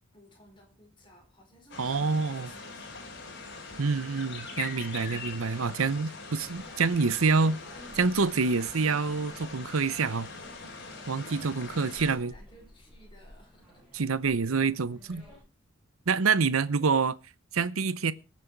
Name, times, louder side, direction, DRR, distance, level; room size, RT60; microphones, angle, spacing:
voice 1, 0.1-3.1 11.2-14.0 16.8-17.0, equal, 25° left, 5.5 m, -57 dB
sound 1, 1.7-12.2, left 4 dB, 55° left, 4.0 m, -42 dB
voice 2, 1.8-2.5 3.8-7.6 7.9-10.3 11.1-12.3 13.9-15.2 16.1-17.1 17.5-18.1, right 4 dB, 80° right, 0.8 m, -27 dB
sound 2, 6.4-15.4, equal, 5° right, 7.1 m, -54 dB
21.0 x 7.5 x 4.6 m
head